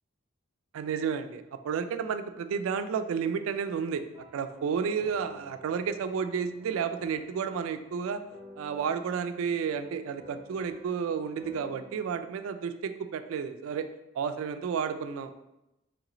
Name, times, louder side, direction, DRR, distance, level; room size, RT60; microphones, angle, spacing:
voice 1, 0.7-4.0 4.3-8.2 8.6-13.9 14.1-15.5, right 6 dB, 80° right, 11 dB, 0.3 m, -31 dB
sound 1, 3.7-11.9, equal, 5° right, 0.6 m, -52 dB
3.2 x 3.0 x 3.8 m, 0.91 s
head